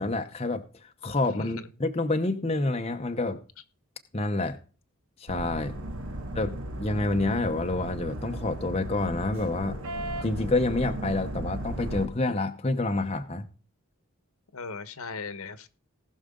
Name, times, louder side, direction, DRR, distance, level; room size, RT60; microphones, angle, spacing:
voice 1, 0.0-3.4 4.1-4.6 5.2-5.7 6.3-9.8 10.2-13.4, left 2 dB, 25° left, 0.8 m, -28 dB
voice 2, 1.4-1.7 6.1-6.3 14.5-15.7, left 4 dB, 75° left, 1.2 m, -38 dB
sound 1, 5.3-12.1, right 1 dB, 65° right, 1.9 m, -36 dB
19.0 x 6.4 x 3.8 m
head